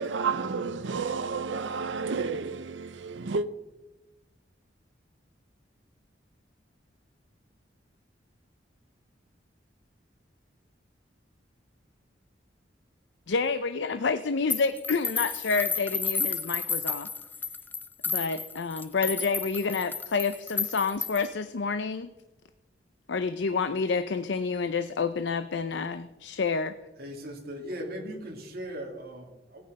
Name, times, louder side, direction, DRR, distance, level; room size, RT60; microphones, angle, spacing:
voice 1, 0.0-3.5, right 5 dB, 90° right, 0.7 m, -31 dB
voice 2, 13.3-17.1 18.1-22.1 23.1-26.8, left 4 dB, 75° left, 0.6 m, -29 dB
sound 1, 14.5-21.3, left 5 dB, 10° left, 0.4 m, -32 dB
voice 3, 27.0-29.6, equal, 55° right, 2.8 m, -38 dB
17.5 x 8.8 x 5.3 m
head